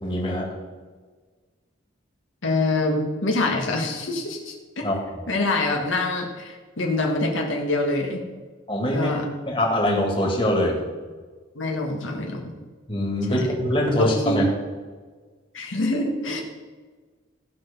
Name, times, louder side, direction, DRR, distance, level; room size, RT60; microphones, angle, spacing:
voice 1, 0.0-0.5 4.8-5.1 8.7-9.1 9.5-10.8 12.9-14.4, left 1 dB, 25° left, -1 dB, 2.2 m, -23 dB
voice 2, 2.4-4.6 5.3-8.2 8.9-9.3 11.6-12.5 13.3-13.5 14.0-14.5 15.5-16.4, left 2 dB, 75° left, 0 dB, 1.6 m, -25 dB
15.5 x 6.0 x 5.3 m, 1.4 s
head